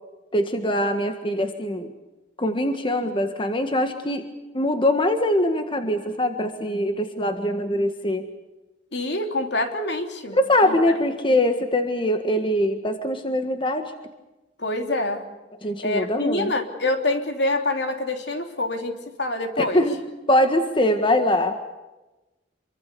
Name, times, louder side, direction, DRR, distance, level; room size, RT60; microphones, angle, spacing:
voice 1, 0.3-1.9 2.4-4.2 4.5-8.3 10.3-13.9 15.6-16.5 19.6-20.0 20.3-21.5, left 1 dB, 30° left, 7 dB, 1.7 m, -22 dB
voice 2, 8.9-11.0 11.3-11.4 14.6-15.2 15.8-19.8, left 2 dB, 70° left, 5 dB, 3.2 m, -26 dB
27.0 x 24.0 x 6.9 m, 1.1 s
head